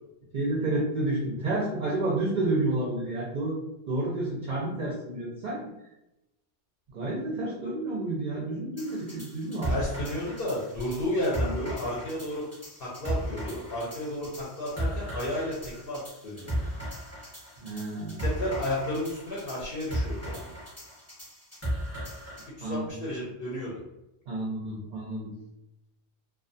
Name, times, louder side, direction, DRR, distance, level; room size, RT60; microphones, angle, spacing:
voice 1, 0.3-3.6 3.9-5.6 6.9-9.7 17.6-18.2 22.6-22.9 24.3-25.3, right 2 dB, 50° right, -4 dB, 0.6 m, -30 dB
sound 1, 8.8-22.5, equal, 15° left, 0.8 m, -36 dB
voice 2, 9.6-12.5 12.8-16.5 18.2-20.5 22.6-23.8, left 1 dB, 60° left, -6 dB, 0.8 m, -32 dB
2.4 x 2.3 x 2.6 m, 0.91 s
omnidirectional pair, 1.2 m